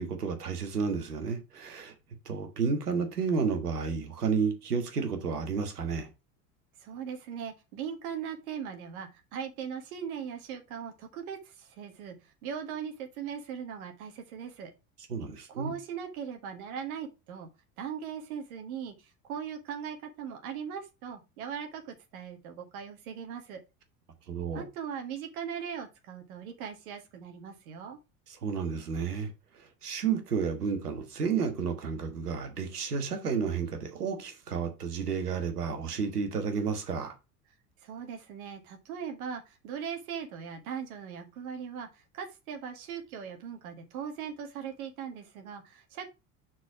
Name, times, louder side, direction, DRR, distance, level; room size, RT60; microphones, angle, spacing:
voice 1, 0.0-1.9 2.2-6.1 15.1-15.7 24.3-24.6 28.3-37.1, right 5 dB, 90° right, 1.6 m, -31 dB
voice 2, 6.8-14.7 15.5-17.5 17.8-23.6 24.5-28.0 37.8-46.1, right 7 dB, 70° right, 1.7 m, -39 dB
6.2 x 4.5 x 4.9 m
hypercardioid pair, 75°, 45 cm